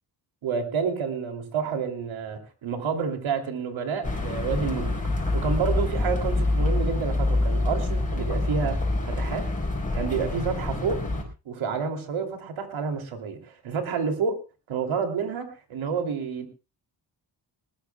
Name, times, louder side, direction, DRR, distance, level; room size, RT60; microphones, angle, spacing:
voice 1, 0.4-9.5 9.9-11.0 11.4-14.4 14.7-16.5, right 6 dB, 85° right, 5 dB, 3.1 m, -29 dB
sound 1, 4.0-11.2, left 2 dB, 15° left, 5.1 m, -26 dB
20.5 x 20.0 x 2.3 m, 0.31 s
cardioid pair, 100°, 46 cm